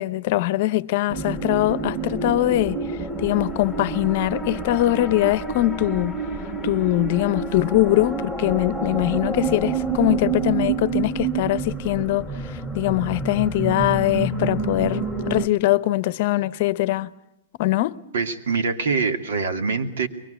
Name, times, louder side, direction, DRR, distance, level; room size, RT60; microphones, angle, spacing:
voice 1, 0.0-2.8 3.2-6.1 6.6-17.1 17.6-18.0, left 16 dB, 45° left, 0.8 m, -22 dB
sound 1, 1.1-15.5, right 4 dB, 5° right, 2.0 m, -28 dB
voice 2, 18.1-20.1, right 4 dB, 85° right, 2.6 m, -24 dB
23.0 x 21.0 x 8.1 m
supercardioid pair, 165°, 0 cm